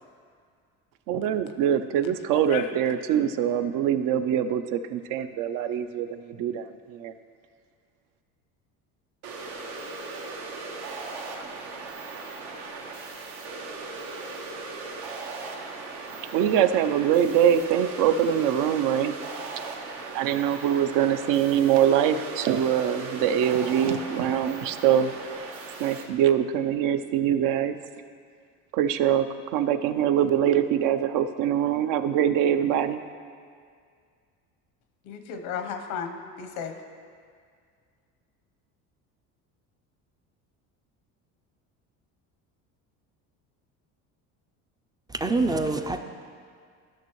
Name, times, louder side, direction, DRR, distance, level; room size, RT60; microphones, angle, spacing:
voice 1, 1.1-7.1 16.3-19.2 20.1-25.1 25.8-27.8 28.7-33.0, right 9 dB, 70° right, 10 dB, 0.6 m, -23 dB
voice 2, 2.3-2.7 35.0-36.8, left 7 dB, 85° left, 7 dB, 0.9 m, -34 dB
sound 1, 9.2-26.0, right 3 dB, 85° right, 1.2 m, -38 dB
voice 3, 45.1-46.0, right 3 dB, 10° right, 6 dB, 0.3 m, -25 dB
13.0 x 6.3 x 3.0 m, 2.1 s
cardioid pair, 110°, 33 cm